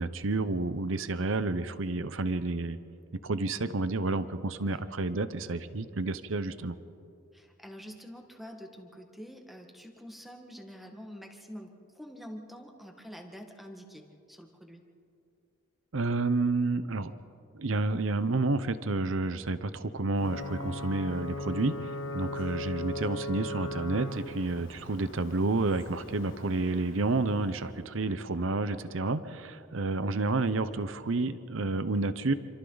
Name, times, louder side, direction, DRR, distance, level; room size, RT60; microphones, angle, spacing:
voice 1, 0.0-2.8 3.2-6.8 15.9-17.1 17.5-32.3, right 3 dB, 70° right, 13 dB, 0.8 m, -30 dB
voice 2, 7.3-14.8, equal, ahead, 2 dB, 1.8 m, -47 dB
Ocean / Boat Water vehicle / Alarm, 20.2-27.7, left 1 dB, 70° left, 1.8 m, -39 dB
27.5 x 26.0 x 4.0 m, 2.5 s
head